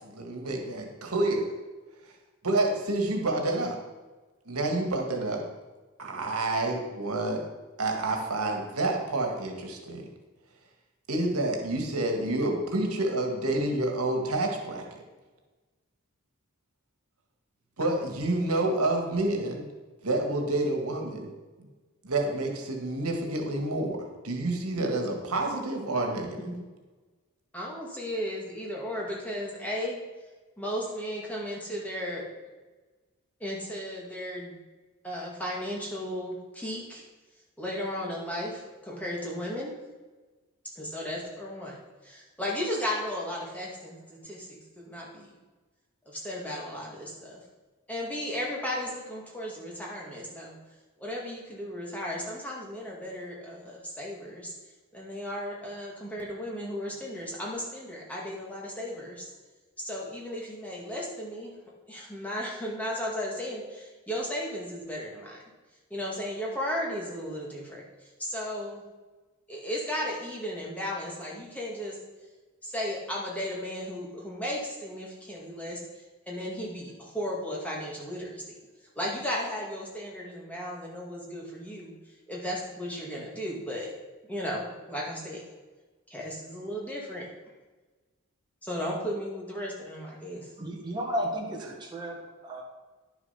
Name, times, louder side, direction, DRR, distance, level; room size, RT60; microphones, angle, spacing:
voice 1, 0.0-1.4 2.4-3.8 4.5-5.4 6.0-7.4 7.8-10.1 11.1-15.0 17.8-19.7 20.0-21.3 21.6-21.7 22.0-24.0 24.2-26.4, right 2 dB, 85° right, 3 dB, 1.9 m, -28 dB
voice 2, 27.5-30.0 30.6-32.2 33.4-34.6 35.0-37.0 37.6-39.7 40.8-41.7 42.0-45.3 46.1-47.4 47.9-50.6 51.0-54.5 54.9-59.3 59.8-61.5 61.9-65.4 65.9-67.8 68.2-68.8 69.5-72.0 72.6-75.8 76.3-78.5 79.0-81.9 82.3-83.9 84.3-85.4 86.1-87.3 88.6-90.5, equal, 5° left, -4 dB, 2.1 m, -35 dB
voice 3, 90.6-92.2 92.4-92.6, equal, 20° right, -1 dB, 1.6 m, -33 dB
10.5 x 7.0 x 5.8 m, 1.2 s
head